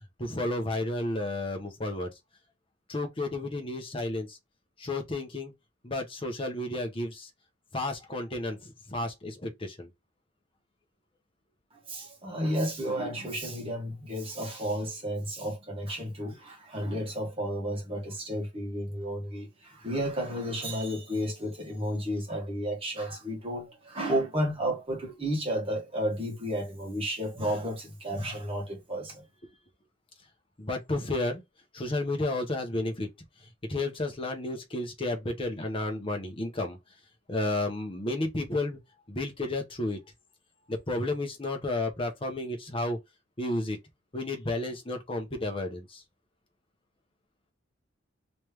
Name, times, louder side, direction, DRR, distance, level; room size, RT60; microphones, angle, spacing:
voice 1, 0.2-2.1 2.9-4.4 4.8-5.5 5.8-7.3 7.7-9.9 30.6-31.4 31.7-33.1 33.7-36.8 37.3-38.8 39.1-40.0 40.7-43.0 43.4-43.8 44.1-46.0, left 2 dB, 30° left, 0.9 m, -32 dB
voice 2, 11.9-29.2, equal, 30° right, 1.5 m, -32 dB
3.1 x 3.1 x 3.3 m
head